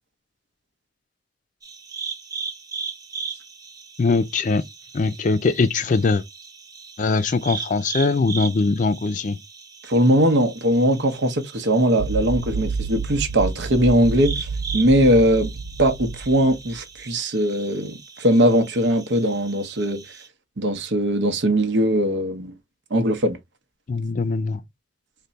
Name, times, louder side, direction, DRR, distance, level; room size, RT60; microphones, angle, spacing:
sound 1, 1.6-20.3, right 5 dB, 20° right, 0.6 m, -38 dB
voice 1, 4.0-4.6 4.9-6.2 7.0-9.4 23.9-24.6, left 3 dB, 45° left, 0.4 m, -21 dB
voice 2, 9.8-15.5 15.8-20.0 20.6-22.5 22.9-23.4, equal, 85° right, 0.8 m, -20 dB
sound 2, 12.0-16.8, right 4 dB, 60° right, 0.3 m, -29 dB
3.3 x 2.2 x 4.0 m
head